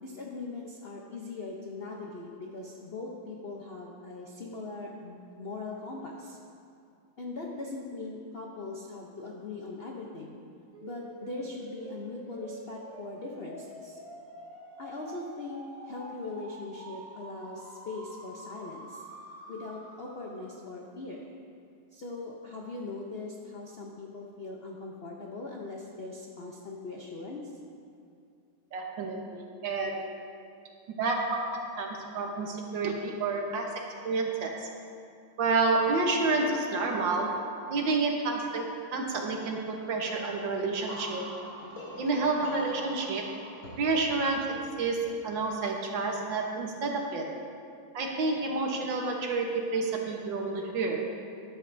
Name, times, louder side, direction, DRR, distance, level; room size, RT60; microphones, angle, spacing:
voice 1, 0.0-6.4 7.2-10.4 10.8-14.0 14.8-19.0 19.5-21.3 21.9-27.5, left 3 dB, 80° left, -2 dB, 0.5 m, -40 dB
sound 1, 10.7-20.6, right 1 dB, 85° right, 3.1 m, -47 dB
voice 2, 28.7-30.1 31.0-34.7 35.4-41.3 42.0-43.3 43.8-47.3 47.9-51.1, right 3 dB, 65° right, 1 dB, 1.8 m, -29 dB
sound 2, 40.1-45.6, equal, 65° left, 3.8 m, -44 dB
13.5 x 12.0 x 2.7 m, 2.4 s
omnidirectional pair, 2.4 m